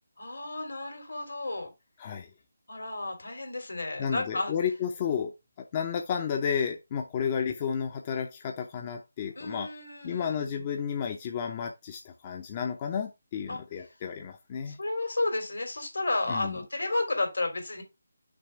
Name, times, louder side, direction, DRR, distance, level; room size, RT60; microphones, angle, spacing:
voice 1, 0.2-1.7 2.7-4.5 9.4-10.7 13.5-13.6 14.7-17.8, left 2 dB, 75° left, 2.9 m, -32 dB
voice 2, 4.0-5.3 5.6-9.7 10.0-14.8 16.3-16.6, left 7 dB, 30° left, 0.6 m, -32 dB
6.2 x 3.2 x 5.6 m
figure-of-eight pair, 155°, 0 cm